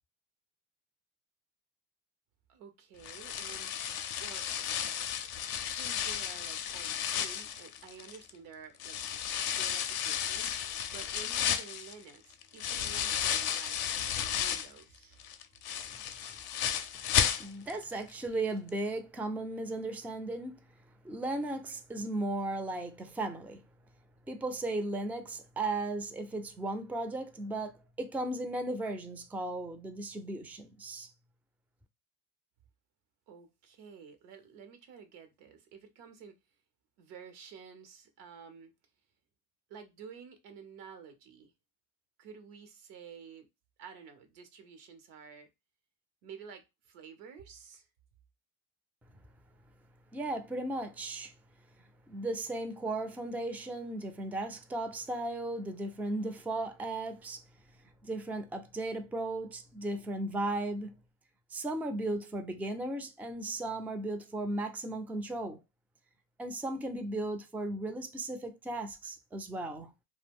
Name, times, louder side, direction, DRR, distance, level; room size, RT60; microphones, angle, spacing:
voice 1, 2.5-3.7 4.2-4.5 5.7-13.8 14.4-15.2 33.3-36.3 37.0-38.7 39.7-41.5 42.2-43.5 43.8-45.5 46.2-47.9, right 6 dB, 80° right, 0.7 m, -51 dB
sound 1, 3.0-8.3 8.8-14.8 15.2-17.8 18.1-18.2 18.7-18.8, left 9 dB, 65° left, 0.5 m, -33 dB
voice 2, 17.2-20.6 21.0-23.6 24.3-31.1 50.1-51.3 52.1-57.4 58.0-60.9 61.5-65.6 66.4-69.9, right 2 dB, 5° right, 0.3 m, -36 dB
2.3 x 2.1 x 3.4 m
supercardioid pair, 65°, 40 cm